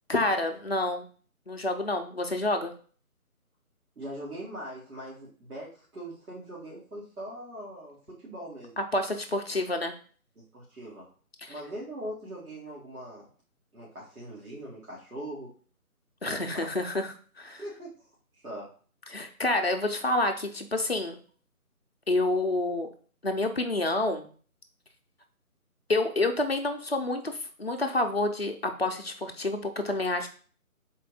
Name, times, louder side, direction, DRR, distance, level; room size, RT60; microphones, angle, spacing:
voice 1, 0.1-1.1 1.5-2.7 8.8-9.9 11.4-11.5 16.2-17.6 19.1-21.2 22.1-22.9 23.2-24.3 25.9-30.3, left 2 dB, 45° left, 4 dB, 0.6 m, -28 dB
voice 2, 4.0-8.8 10.4-11.1 11.5-13.3 13.7-15.5 16.5-16.7 17.6-17.9 18.4-18.7, right 1 dB, 75° right, -7 dB, 2.1 m, -41 dB
4.2 x 2.6 x 4.8 m, 0.42 s
figure-of-eight pair, 175°, 44 cm